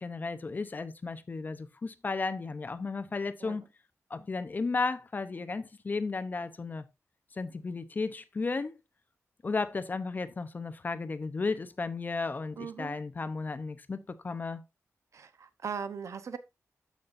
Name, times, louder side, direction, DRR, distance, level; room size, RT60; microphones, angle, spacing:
voice 1, 0.0-3.7 4.1-6.8 7.3-8.8 9.4-14.6, left 4 dB, 35° left, 0.6 m, -34 dB
voice 2, 12.6-13.0 15.1-16.4, right 6 dB, 65° right, 0.8 m, -39 dB
13.5 x 5.6 x 2.5 m
wide cardioid pair, 165°, 5 cm